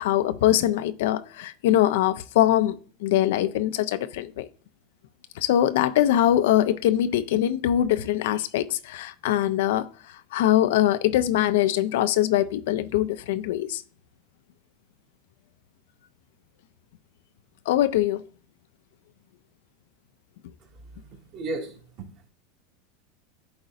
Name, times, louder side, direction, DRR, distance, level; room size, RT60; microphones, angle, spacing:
voice 1, 0.0-4.5 5.4-13.8 17.7-18.2, left 12 dB, 75° left, 0.5 m, -23 dB
voice 2, 20.6-22.3, right 2 dB, 55° right, 2.6 m, -37 dB
11.5 x 3.9 x 2.5 m
hypercardioid pair, 105°, 0 cm